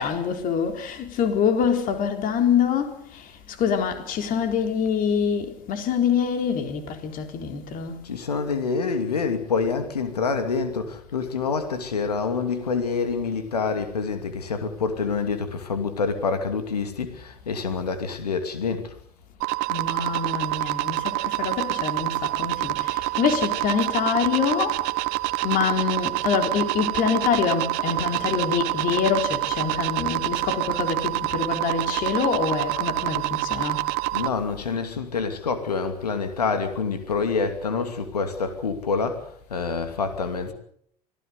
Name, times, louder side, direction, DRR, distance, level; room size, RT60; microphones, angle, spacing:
voice 1, 0.0-8.0 19.7-24.9 25.4-33.9, left 7 dB, 45° left, 4.0 m, -25 dB
voice 2, 8.0-18.9 34.1-40.5, left 5 dB, 85° left, 2.7 m, -27 dB
sound 1, 19.4-34.3, right 22 dB, 55° right, 1.0 m, -27 dB
25.5 x 18.0 x 8.1 m
figure-of-eight pair, 80°, 20 cm